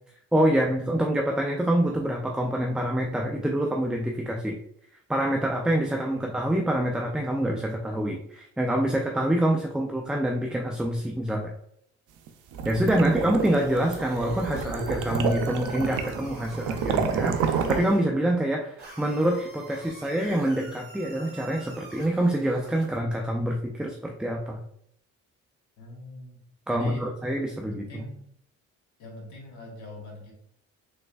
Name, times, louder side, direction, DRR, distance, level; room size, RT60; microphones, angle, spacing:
voice 1, 0.3-4.6 5.1-11.5 12.7-24.6 26.7-28.0, right 1 dB, 5° right, 1 dB, 0.3 m, -26 dB
sound 1, 12.3-17.8, right 6 dB, 85° right, 0.5 m, -29 dB
sound 2, 13.4-18.0 18.8-23.0, right 2 dB, 50° right, 1.3 m, -46 dB
voice 2, 25.8-26.4 26.7-27.0 27.7-28.3 29.0-30.3, left 1 dB, 70° left, 0 dB, 1.3 m, -44 dB
3.4 x 3.2 x 2.3 m, 0.70 s
cardioid pair, 90°, 30 cm